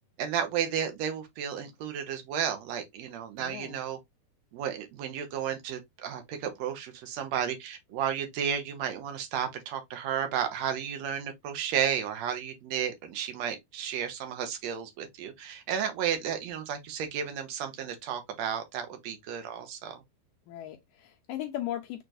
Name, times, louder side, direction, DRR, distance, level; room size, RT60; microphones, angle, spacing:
voice 1, 0.2-4.0 4.5-20.0, right 8 dB, 75° right, 1.6 m, -33 dB
voice 2, 3.4-3.8 20.5-22.0, left 12 dB, 85° left, 2.0 m, -37 dB
6.7 x 3.1 x 2.6 m
omnidirectional pair, 4.5 m